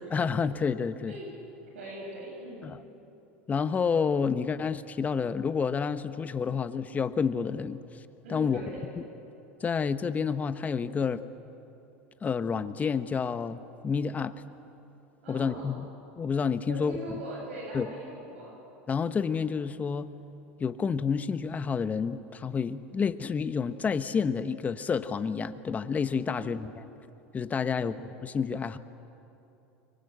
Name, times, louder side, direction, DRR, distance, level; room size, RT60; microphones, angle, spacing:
voice 1, 0.1-1.1 2.6-2.8 3.5-7.8 8.3-8.6 9.0-9.1 9.6-11.2 12.2-14.3 15.3-15.9 16.2-17.2 17.7-17.9 18.9-20.1 20.6-26.8 27.3-28.0 28.2-28.8, left 6 dB, 25° left, 12 dB, 1.1 m, -29 dB
voice 2, 1.7-2.7 8.2-8.8 15.2-15.7 16.7-18.5 26.3-26.6 27.7-28.0, right 1 dB, 90° right, -2 dB, 8.0 m, -41 dB
25.0 x 23.0 x 8.1 m, 2.9 s
supercardioid pair, 105°, 6 cm